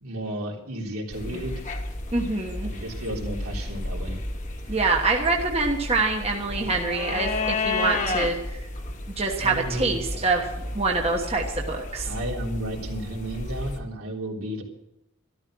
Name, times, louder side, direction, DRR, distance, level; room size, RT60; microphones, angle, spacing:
voice 1, 0.0-1.5 2.6-4.2 9.4-10.3 12.0-14.6, right 1 dB, 80° right, -1 dB, 3.5 m, -33 dB
sound 1, 1.1-13.8, left 2 dB, 35° left, 1.3 m, -32 dB
voice 2, 2.1-2.7 4.7-8.6 9.2-10.5 10.7-12.1, right 3 dB, 25° right, 1 dB, 1.3 m, -25 dB
13.0 x 13.0 x 6.2 m, 0.86 s
head